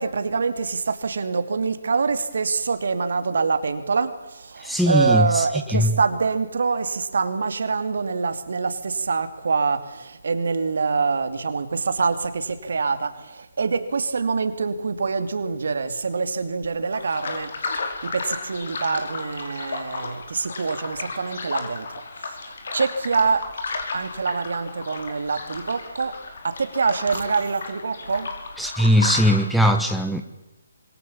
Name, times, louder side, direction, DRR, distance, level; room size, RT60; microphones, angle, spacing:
voice 1, 0.0-21.9 22.2-23.5 23.9-26.2 26.4-28.3, right 4 dB, 60° right, 10 dB, 2.7 m, -25 dB
voice 2, 4.6-5.4 5.7-6.0 28.6-30.2, equal, ahead, 5 dB, 1.3 m, -20 dB
sound 1, 16.9-29.4, left 4 dB, 55° left, 5.4 m, -33 dB
26.0 x 25.5 x 7.3 m, 0.96 s
figure-of-eight pair, 145°, 0 cm